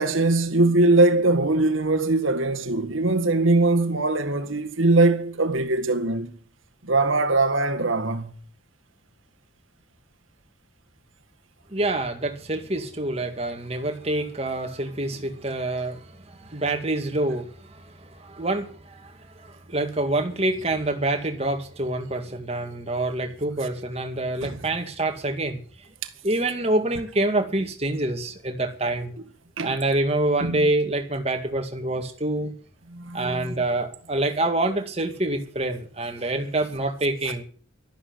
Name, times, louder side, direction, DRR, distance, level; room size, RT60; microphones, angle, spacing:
voice 1, 0.0-6.3 6.8-8.3 24.4-24.6 29.6-29.8 30.4-30.7 32.9-33.5, right 2 dB, 85° right, 1.9 m, -21 dB
voice 2, 11.7-25.6 26.2-29.1 29.6-32.5 33.1-37.4, right 2 dB, 30° right, 2.1 m, -26 dB
12.5 x 11.5 x 8.0 m
head